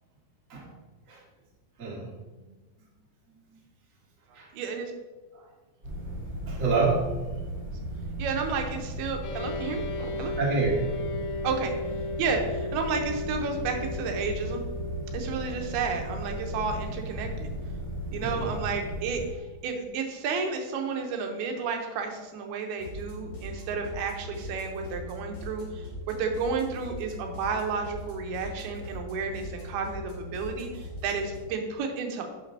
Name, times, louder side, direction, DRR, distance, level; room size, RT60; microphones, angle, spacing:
voice 1, 1.8-2.1 2.4-2.5 3.4-3.6 4.3-4.5 5.3-5.4 6.4-7.1 10.4-11.0 18.2-18.5, right 4 dB, 70° right, -5 dB, 0.7 m, -28 dB
voice 2, 4.5-4.9 8.2-10.3 11.4-11.7 12.2-14.6 15.1-17.5 18.1-19.2 19.6-32.4, right 5 dB, 90° right, 3 dB, 2.8 m, -32 dB
sound 1, 5.8-19.3, equal, 20° right, 1.8 m, -36 dB
sound 2, 9.2-20.8, left 2 dB, 80° left, 2.1 m, -38 dB
sound 3, 22.8-31.4, equal, 40° left, 2.6 m, -40 dB
8.4 x 5.9 x 2.7 m, 1.3 s
omnidirectional pair, 4.4 m